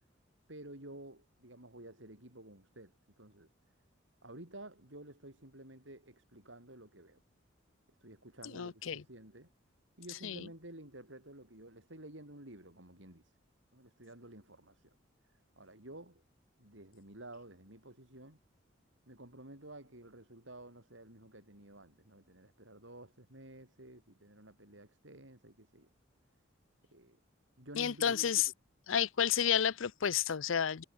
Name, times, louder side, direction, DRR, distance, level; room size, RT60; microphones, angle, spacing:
voice 1, 0.5-3.5 4.2-7.2 8.0-9.5 10.0-13.3 13.7-15.0 15.6-16.2 16.6-18.4 19.1-25.9 26.9-27.2 27.6-28.2, right 1 dB, 70° right, 6.1 m, -52 dB
voice 2, 8.5-9.0 10.2-10.4 27.8-28.5 28.9-30.8, left 8 dB, 80° left, 0.6 m, -31 dB
head